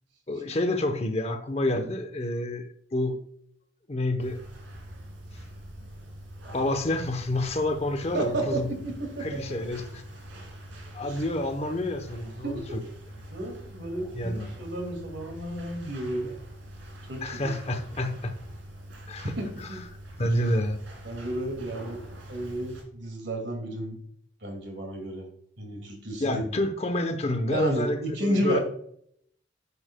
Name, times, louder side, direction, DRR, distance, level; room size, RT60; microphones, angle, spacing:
voice 1, 0.3-3.2 3.9-4.4 6.5-8.7 9.2-10.0 10.9-12.8 14.1-14.5 17.2-18.3 19.1-19.3 20.2-20.8 26.2-28.6, left 1 dB, 30° left, 7 dB, 0.8 m, -28 dB
sound 1, 4.2-22.8, right 1 dB, 75° right, 2.2 m, -44 dB
voice 2, 8.1-9.3 11.0-11.2 12.4-12.8 13.3-16.3 17.1-17.5 19.2-19.8 21.0-22.0 22.3-24.0 24.4-25.3 25.6-26.7 27.5-28.6, right 1 dB, 60° right, 4 dB, 2.1 m, -32 dB
10.0 x 7.1 x 2.2 m, 0.68 s
head